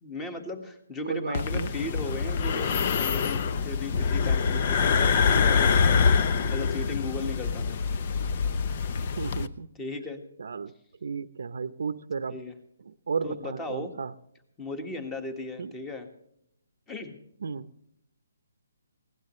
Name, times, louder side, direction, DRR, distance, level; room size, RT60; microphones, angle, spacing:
voice 1, 0.0-7.8 9.8-10.2 12.3-12.5 13.2-13.9 14.6-16.1 16.9-17.2, left 2 dB, 10° left, 8 dB, 1.7 m, -37 dB
voice 2, 1.1-1.7 9.0-9.7 10.4-10.7 11.0-12.4 12.9-14.1 15.6-15.7 17.4-17.7, right 5 dB, 70° right, 13 dB, 0.8 m, -33 dB
sound 1, 1.3-9.5, left 5 dB, 35° left, 0.7 m, -25 dB
22.0 x 17.0 x 3.2 m, 0.73 s
hypercardioid pair, 165°, 0 cm